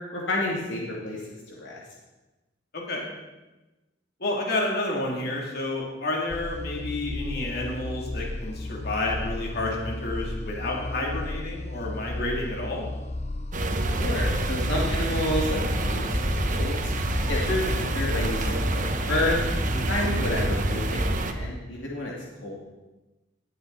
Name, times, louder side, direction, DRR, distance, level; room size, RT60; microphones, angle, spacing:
voice 1, 0.1-1.8 14.0-16.9 17.3-19.4 19.7-22.1 22.4-22.6, left 1 dB, 75° left, -3 dB, 2.5 m, -30 dB
voice 2, 2.7-3.0 4.2-12.9, left 2 dB, 60° left, -2 dB, 3.0 m, -30 dB
sound 1, 6.3-20.5, left 2 dB, 35° left, 0.6 m, -34 dB
sound 2, 13.5-21.3, right 1 dB, 45° right, 1.2 m, -27 dB
18.5 x 10.0 x 4.2 m, 1.1 s
head